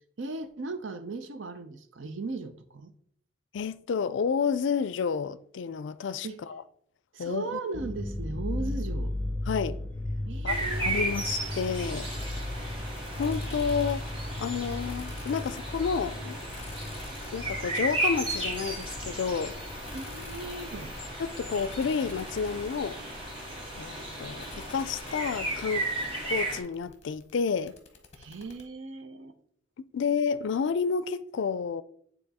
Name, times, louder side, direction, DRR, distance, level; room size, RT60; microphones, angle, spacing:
voice 1, 0.2-2.9 6.2-6.4 7.1-9.1 10.3-11.0 19.9-21.0 28.2-29.3, right 3 dB, 80° right, 0.6 m, -37 dB
voice 2, 3.5-6.6 7.2-7.6 9.5-9.8 10.4-12.1 13.2-14.1 14.4-16.4 17.3-19.6 21.2-23.0 23.8-25.9 26.3-27.7 29.8-31.8, left 6 dB, 70° left, 0.4 m, -30 dB
sound 1, 7.7-22.8 23.1-24.2 24.6-24.7 25.0-25.7, left 1 dB, 10° left, 0.4 m, -37 dB
sound 2, 10.5-26.6, right 1 dB, 25° right, 1.4 m, -35 dB
sound 3, 12.0-28.6, left 4 dB, 35° left, 0.8 m, -50 dB
8.9 x 3.0 x 4.1 m
head